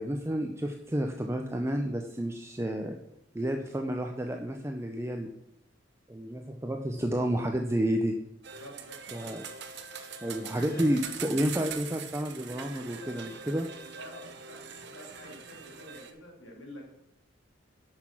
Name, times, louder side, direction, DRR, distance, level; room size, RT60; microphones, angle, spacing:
voice 1, 0.0-3.0 3.3-5.3 6.1-8.2 9.1-9.5 10.2-13.7, equal, 15° right, 4 dB, 0.6 m, -30 dB
sound 1, 8.4-16.1, right 6 dB, 55° right, 1.0 m, -42 dB
voice 2, 8.6-9.0 10.5-10.9 13.9-17.0, equal, 75° left, -1 dB, 3.3 m, -48 dB
10.5 x 6.1 x 6.0 m, 0.79 s
head